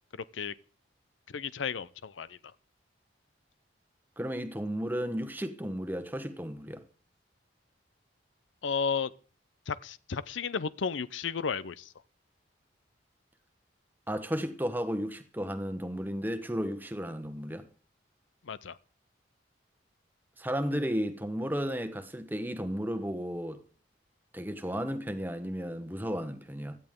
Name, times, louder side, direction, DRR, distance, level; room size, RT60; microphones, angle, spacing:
voice 1, 1.3-2.4 8.6-9.1 9.7-11.9 18.5-18.8, left 6 dB, 85° left, 0.6 m, -33 dB
voice 2, 4.2-6.8 14.1-17.7 20.4-23.6 24.3-26.8, equal, 10° right, 1.1 m, -33 dB
16.5 x 12.5 x 3.7 m
head